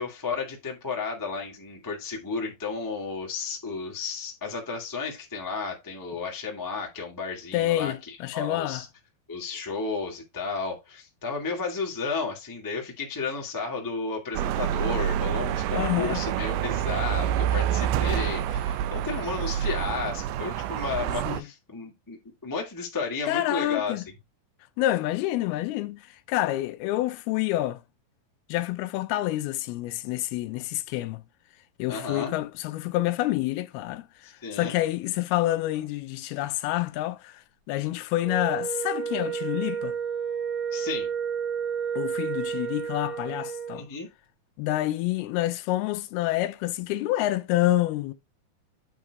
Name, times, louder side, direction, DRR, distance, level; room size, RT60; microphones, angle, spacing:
voice 1, 0.0-8.8 9.3-23.9 31.9-32.3 34.2-34.8 40.7-41.1 43.7-44.1, left 4 dB, 15° left, 0.6 m, -33 dB
voice 2, 7.5-8.8 15.7-16.2 21.3-21.5 23.3-24.0 24.8-27.8 28.5-31.2 31.8-40.0 42.0-43.9 44.6-48.1, left 15 dB, 85° left, 2.6 m, -28 dB
sound 1, 14.3-21.4, right 10 dB, 90° right, 1.9 m, -27 dB
Wind instrument woodwind instrument, 38.2-43.8, right 7 dB, 60° right, 1.2 m, -31 dB
8.7 x 3.8 x 4.6 m
omnidirectional pair, 4.4 m